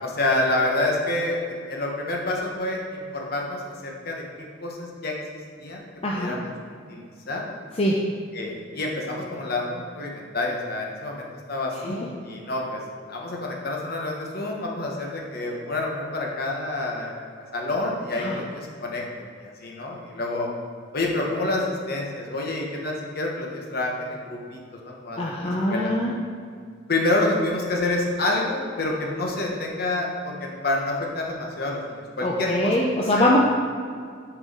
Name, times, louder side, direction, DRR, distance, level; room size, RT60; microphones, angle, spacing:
voice 1, 0.0-4.2 4.6-5.1 5.6-5.8 6.1-6.5 6.9-7.4 8.3-12.8 13.1-17.2 17.5-20.5 20.9-24.6 24.8-25.9 26.9-32.7 33.2-33.3, left 2 dB, 50° left, -1 dB, 1.2 m, -28 dB
voice 2, 6.0-6.4 7.7-8.1 11.9-12.1 18.2-18.4 25.2-26.2 32.2-33.4, left 1 dB, 30° left, -3 dB, 0.6 m, -23 dB
7.2 x 4.6 x 5.4 m, 2.2 s
head